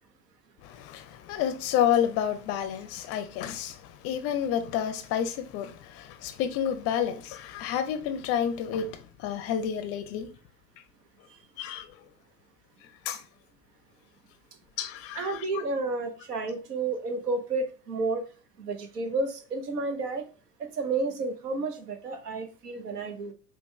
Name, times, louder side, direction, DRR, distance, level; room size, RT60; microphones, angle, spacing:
voice 1, 1.3-3.7 4.0-5.7 6.2-8.9 9.2-10.3 11.6-11.8 13.1-13.2 14.8-15.4, left 9 dB, 30° left, 0.5 m, -29 dB
voice 2, 15.1-18.2 18.6-20.3 20.6-23.3, right 3 dB, 70° right, 0.9 m, -31 dB
5.2 x 2.3 x 3.2 m
figure-of-eight pair, 75°, 49 cm